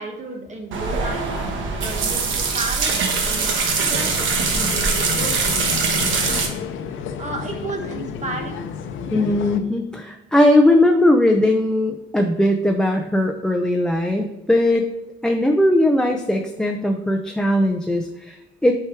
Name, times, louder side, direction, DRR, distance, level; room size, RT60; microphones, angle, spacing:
voice 1, 0.0-1.3 1.8-2.9 3.2-6.6 6.9-8.6, right 2 dB, 35° right, 2 dB, 1.6 m, -33 dB
sound 1, 0.7-6.5, right 4 dB, 80° right, 1.2 m, -22 dB
sound 2, 3.7-9.6, left 6 dB, 80° left, 0.7 m, -31 dB
voice 2, 9.1-14.9 15.2-18.7, left 1 dB, 5° left, 3 dB, 0.6 m, -19 dB
6.3 x 4.7 x 4.6 m, 0.91 s
cardioid pair, 90°, 20 cm